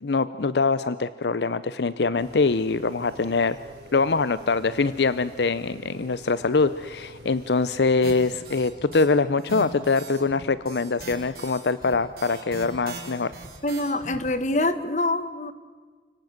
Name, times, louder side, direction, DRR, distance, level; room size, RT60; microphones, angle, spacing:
voice 1, 0.0-3.6 3.9-13.3, left 4 dB, 75° left, 15 dB, 0.6 m, -23 dB
sound 1, 2.1-8.6, equal, 75° right, 5.3 m, -46 dB
sound 2, 8.0-9.0 9.4-14.3, right 2 dB, 55° right, 4.1 m, -40 dB
voice 2, 13.6-15.5, left 2 dB, 40° left, 12 dB, 1.3 m, -25 dB
29.0 x 18.0 x 8.0 m, 1.5 s
head